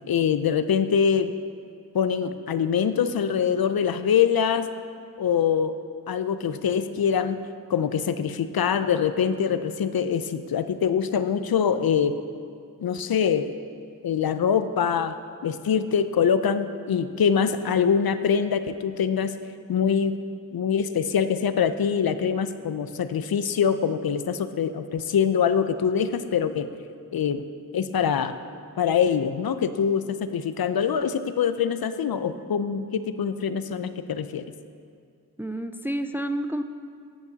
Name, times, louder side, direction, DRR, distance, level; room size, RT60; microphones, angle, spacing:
voice 1, 0.1-1.3 1.9-4.7 5.2-5.8 6.1-7.4 7.7-12.2 12.8-13.5 14.0-15.2 15.4-19.3 19.7-20.1 20.5-26.7 27.1-27.5 27.7-28.4 28.8-34.4, left 7 dB, 70° left, 11 dB, 0.5 m, -24 dB
voice 2, 35.4-36.6, right 1 dB, 5° right, 8 dB, 0.4 m, -29 dB
9.7 x 9.4 x 4.0 m, 2.4 s
wide cardioid pair, 65°, 38 cm